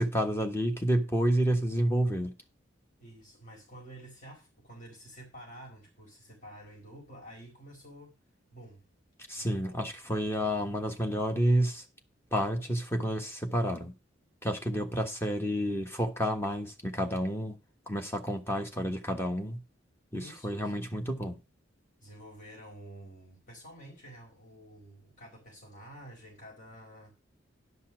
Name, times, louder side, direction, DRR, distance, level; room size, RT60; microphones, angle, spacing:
voice 1, 0.0-2.3 9.3-11.8 12.3-13.9 14.4-17.5 17.9-19.6 20.1-21.4, equal, 15° left, 1.3 m, -30 dB
voice 2, 3.0-8.1 8.5-8.8 9.4-9.8 20.1-20.8 22.0-27.1, right 1 dB, 45° left, 4.6 m, -50 dB
11.0 x 5.6 x 6.1 m
head